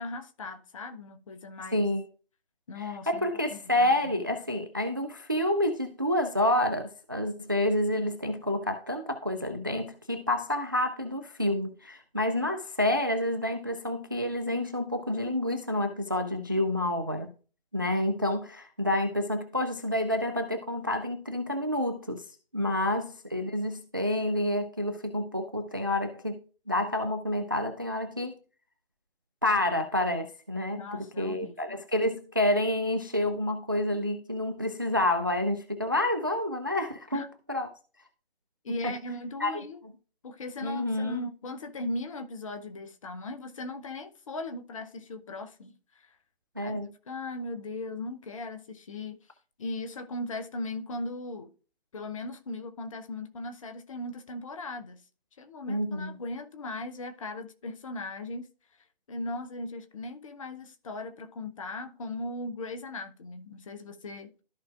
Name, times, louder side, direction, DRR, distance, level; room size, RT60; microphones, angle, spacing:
voice 1, 0.0-1.8 2.7-3.2 3.5-4.1 30.7-31.8 37.1-37.3 38.6-39.8 40.2-46.2 46.6-49.2 49.6-51.5 51.9-55.0 55.4-58.5 59.1-64.3, left 2 dB, 35° left, 0.8 m, -38 dB
voice 2, 1.7-2.0 2.8-17.3 17.7-22.2 22.5-26.4 26.7-28.4 29.4-37.7 38.7-38.9 39.4-39.5 40.6-41.2 46.6-46.9 55.7-56.2, left 1 dB, 20° right, 0.3 m, -29 dB
13.5 x 4.8 x 2.4 m
figure-of-eight pair, 140°, 30 cm